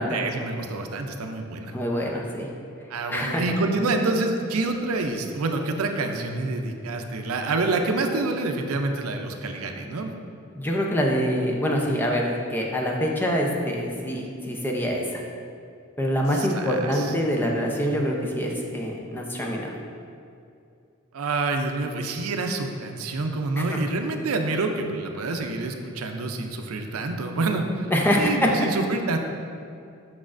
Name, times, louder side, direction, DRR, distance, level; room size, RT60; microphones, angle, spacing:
voice 1, 0.1-1.7 2.9-10.1 16.3-17.1 21.1-27.9 28.2-29.2, right 3 dB, 80° right, 5 dB, 0.5 m, -27 dB
voice 2, 1.7-2.5 3.1-3.4 10.6-15.2 16.0-19.7 23.6-23.8 27.9-28.5, equal, 10° left, -1 dB, 0.6 m, -25 dB
6.2 x 6.0 x 2.5 m, 2.5 s
head